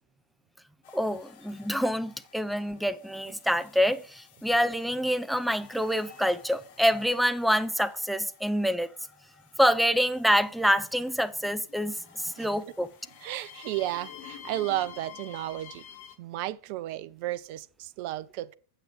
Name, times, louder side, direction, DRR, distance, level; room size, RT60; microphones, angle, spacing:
sound 1, 0.8-16.2, left 9 dB, 50° left, 1.4 m, -51 dB
voice 1, 0.9-8.9 9.6-12.9, equal, ahead, 0.7 m, -26 dB
voice 2, 13.2-15.8 16.2-18.5, right 15 dB, 45° right, 0.5 m, -33 dB
8.9 x 7.6 x 4.8 m
figure-of-eight pair, 90°, 0 cm